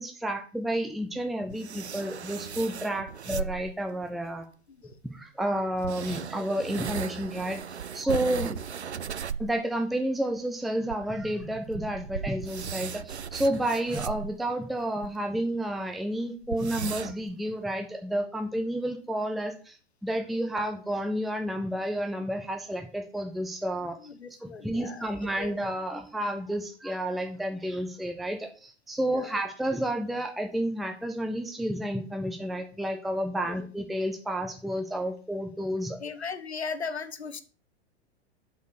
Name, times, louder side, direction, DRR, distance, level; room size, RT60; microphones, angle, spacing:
voice 1, 0.0-4.5 5.1-7.6 7.9-8.6 9.4-19.8 20.0-24.0 24.4-36.0, right 1 dB, ahead, 4 dB, 0.8 m, -30 dB
sound 1, 1.1-3.9 4.9-5.0 5.8-9.6 9.9-10.0 10.4-10.5 10.9-15.1 15.6-15.7 15.9-16.0 16.4-17.3, right 7 dB, 80° right, 0.5 m, -37 dB
voice 2, 4.7-5.0 24.0-25.6 29.1-29.4 33.4-33.7 36.0-37.4, left 5 dB, 75° left, 11 dB, 1.2 m, -38 dB
7.9 x 4.7 x 6.6 m, 0.38 s
figure-of-eight pair, 95°, 32 cm